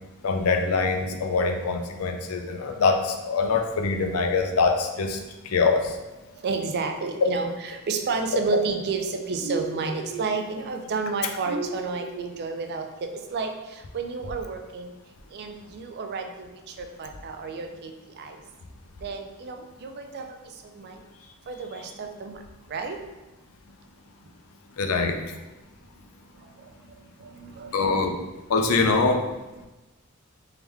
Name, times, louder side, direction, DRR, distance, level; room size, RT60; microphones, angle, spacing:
voice 1, 0.2-5.2 5.5-6.0 24.8-25.2 27.7-28.2 28.5-29.2, left 4 dB, 75° left, 4 dB, 0.5 m, -23 dB
voice 2, 1.7-2.0 6.4-7.5 7.9-13.5 13.9-14.9 15.3-16.5 16.8-17.9 18.2-18.4 19.0-20.2 20.8-21.0 21.5-22.4 22.7-23.0 27.2-27.9, right 4 dB, 50° right, 5 dB, 0.4 m, -31 dB
sound 1, 9.4-10.3 11.4-12.3, right 3 dB, 85° right, 1.1 m, -34 dB
3.5 x 3.4 x 3.1 m, 1.1 s
head